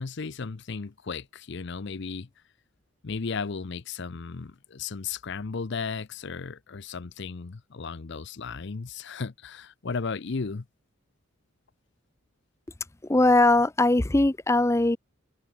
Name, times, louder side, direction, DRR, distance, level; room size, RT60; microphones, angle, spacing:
voice 1, 0.0-2.3 3.0-10.6, left 4 dB, 55° left, 0.6 m, -35 dB
voice 2, 13.1-15.0, left 2 dB, 15° left, 0.5 m, -20 dB
head